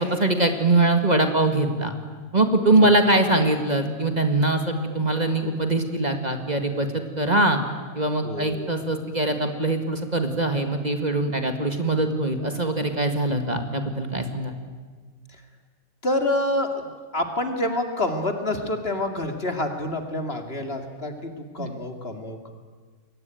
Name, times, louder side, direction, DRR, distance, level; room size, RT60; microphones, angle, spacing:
voice 1, 0.0-1.9 2.3-7.6 8.0-14.5 21.6-21.7, right 2 dB, 30° right, 5 dB, 2.1 m, -22 dB
voice 2, 8.2-8.7 16.0-22.5, left 1 dB, 45° left, 5 dB, 2.7 m, -27 dB
28.5 x 22.5 x 9.3 m, 1.5 s
omnidirectional pair, 1.5 m